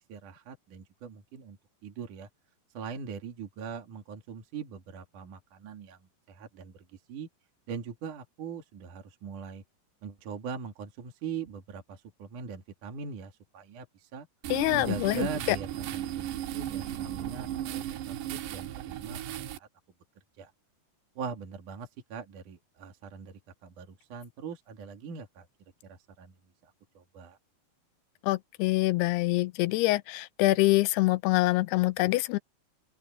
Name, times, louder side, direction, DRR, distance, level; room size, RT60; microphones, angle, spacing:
voice 1, 0.1-1.6 1.8-2.3 2.7-7.3 7.7-9.6 10.0-14.3 14.7-19.7 20.4-20.5 21.2-25.5 25.8-26.3 26.6-27.4, right 6 dB, 55° right, 3.7 m, -41 dB
sound 1, 14.4-19.6, right 11 dB, 85° right, 3.3 m, -36 dB
voice 2, 14.5-15.6 28.2-32.4, left 19 dB, 85° left, 2.6 m, -25 dB
open air
omnidirectional pair, 4.8 m